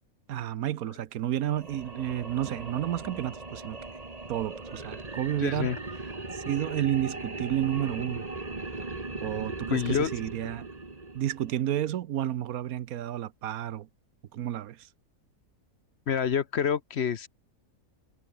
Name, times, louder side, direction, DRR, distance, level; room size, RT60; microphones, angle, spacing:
voice 1, 0.3-3.8 4.3-5.7 6.3-8.3 9.2-10.7 11.1-13.9 14.3-14.9, right 12 dB, 85° right, 1.2 m, -31 dB
sound 1, 1.4-11.7, right 3 dB, 25° right, 2.1 m, -39 dB
voice 2, 5.4-5.8 9.7-10.1 16.1-17.3, left 8 dB, 55° left, 1.0 m, -27 dB
omnidirectional pair, 1.5 m